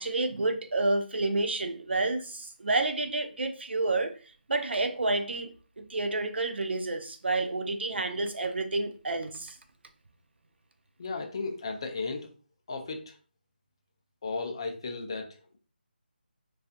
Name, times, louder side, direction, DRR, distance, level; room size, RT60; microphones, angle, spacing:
voice 1, 0.0-4.2 4.5-9.6, right 2 dB, 85° right, 0.4 m, -29 dB
voice 2, 11.0-12.3 12.7-13.2 14.2-15.6, left 4 dB, 30° left, 0.3 m, -35 dB
2.5 x 2.3 x 2.5 m
figure-of-eight pair, 170°, 6 cm